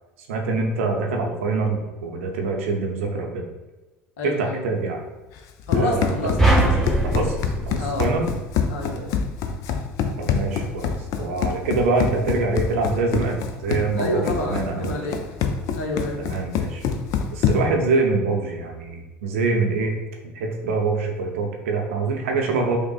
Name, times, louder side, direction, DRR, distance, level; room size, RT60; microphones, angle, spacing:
voice 1, 0.3-3.5 4.2-5.0 5.7-6.1 7.0-7.4 7.7-8.3 10.2-15.1 16.2-16.8 17.3-19.9 20.2-22.8, right 3 dB, 70° right, 2 dB, 0.6 m, -25 dB
voice 2, 4.2-4.6 5.7-6.7 7.8-8.1 8.7-9.1 14.0-15.2 15.7-16.2, left 1 dB, 70° left, -1 dB, 0.8 m, -28 dB
Run, 5.4-17.8, left 6 dB, 55° left, 0.4 m, -26 dB
sound 1, 6.4-8.8, right 1 dB, 5° left, 0.8 m, -22 dB
5.4 x 2.1 x 2.4 m, 1.1 s
figure-of-eight pair, 65°, 7 cm